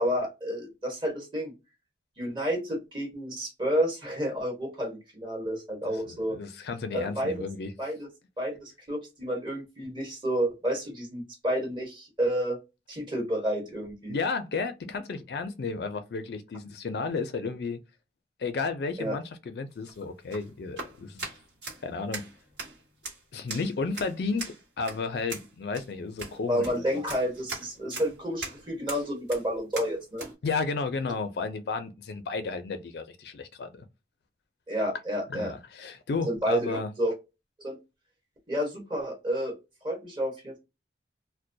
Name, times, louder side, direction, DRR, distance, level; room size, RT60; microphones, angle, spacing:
voice 1, 0.0-1.5 2.2-6.4 6.9-7.3 7.8-8.1 8.4-12.6 12.9-14.2 19.0-19.2 26.5-30.2 34.7-35.5 36.2-37.1 37.6-37.8 38.5-39.5 39.8-40.6, equal, 25° right, 1.1 m, -30 dB
voice 2, 6.1-7.7 14.1-17.8 18.4-21.3 21.8-22.3 23.3-27.0 30.4-33.9 35.3-36.9, left 4 dB, 65° left, 0.4 m, -33 dB
sound 1, 19.7-30.3, right 3 dB, 75° right, 1.2 m, -41 dB
2.2 x 2.1 x 2.6 m
head